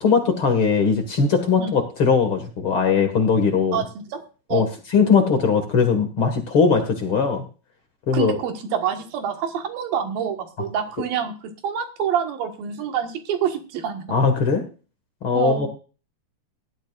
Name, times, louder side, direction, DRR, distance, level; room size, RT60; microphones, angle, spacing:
voice 1, 0.0-3.8 4.5-7.4 8.1-8.4 14.1-14.6 15.2-15.7, left 5 dB, 45° left, 6 dB, 2.2 m, -20 dB
voice 2, 3.7-4.2 4.5-4.7 8.1-11.3 11.6-14.0 15.3-15.7, right 8 dB, 85° right, 5 dB, 3.5 m, -26 dB
17.0 x 12.5 x 2.5 m, 0.35 s
omnidirectional pair, 4.0 m